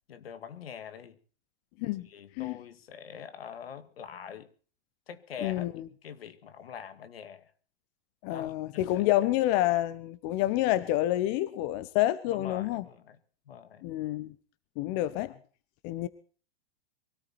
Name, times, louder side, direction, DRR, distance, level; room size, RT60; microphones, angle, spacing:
voice 1, 0.1-1.2 2.1-4.5 5.1-7.5 8.3-9.3 12.3-13.2 13.5-13.9 15.3-15.4, left 7 dB, 85° left, 2.1 m, -44 dB
voice 2, 5.4-5.8 8.2-12.8 13.8-14.3 14.8-15.3 15.8-16.1, left 15 dB, 45° left, 1.1 m, -28 dB
23.0 x 13.5 x 4.3 m
hypercardioid pair, 125°, 29 cm